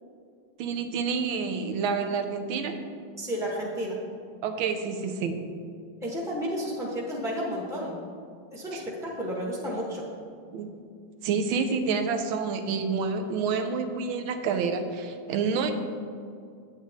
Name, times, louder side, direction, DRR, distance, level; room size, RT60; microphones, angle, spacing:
voice 1, 0.6-2.8 4.4-5.4 8.7-8.8 10.5-10.7 11.2-15.7, right 5 dB, 80° right, 7 dB, 1.5 m, -28 dB
voice 2, 3.2-4.0 6.0-8.0 8.5-10.1, equal, 5° right, -5 dB, 0.5 m, -32 dB
8.7 x 8.3 x 3.5 m, 2.3 s
omnidirectional pair, 2.2 m